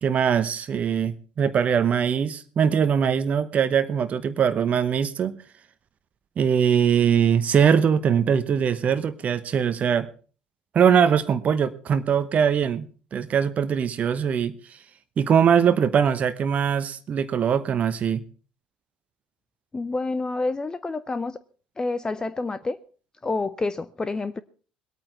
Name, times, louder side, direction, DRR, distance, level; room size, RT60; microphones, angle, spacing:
voice 1, 0.0-5.3 6.4-10.1 10.7-14.5 15.2-18.2, right 7 dB, 35° right, 11 dB, 1.0 m, -22 dB
voice 2, 19.7-21.4 21.8-22.8 23.2-24.4, left 3 dB, 20° left, 16 dB, 0.7 m, -28 dB
21.5 x 8.9 x 4.3 m, 0.38 s
figure-of-eight pair, 60°, 4 cm